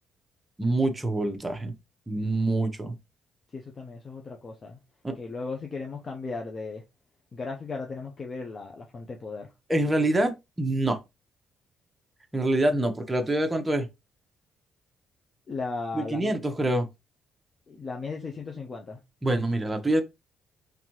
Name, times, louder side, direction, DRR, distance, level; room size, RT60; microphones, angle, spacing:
voice 1, 0.6-1.7 2.1-3.0 5.0-5.1 9.7-11.0 12.3-13.9 15.9-16.9 19.2-20.0, right 1 dB, 15° right, 0.9 m, -25 dB
voice 2, 3.5-4.8 5.1-6.8 7.3-9.5 15.5-16.3 17.7-19.0, left 4 dB, 40° left, 0.8 m, -36 dB
4.0 x 3.5 x 3.1 m
cardioid pair, 90°, 0 cm